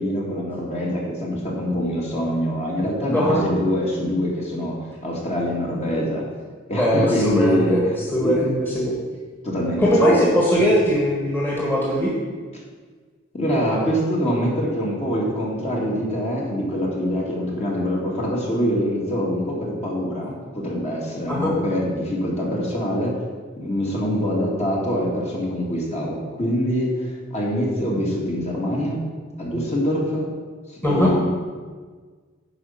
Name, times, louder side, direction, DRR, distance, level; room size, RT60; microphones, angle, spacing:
voice 1, 0.0-6.2 6.7-7.8 8.2-8.5 9.4-10.1 13.3-23.1 23.6-29.0 29.4-30.3 30.7-31.2, equal, 35° left, -3 dB, 2.0 m, -24 dB
voice 2, 3.1-3.4 6.8-7.8 8.1-8.9 9.8-12.1 21.3-21.5 30.8-31.1, equal, 10° left, -5 dB, 1.6 m, -20 dB
9.6 x 5.0 x 5.7 m, 1.5 s
head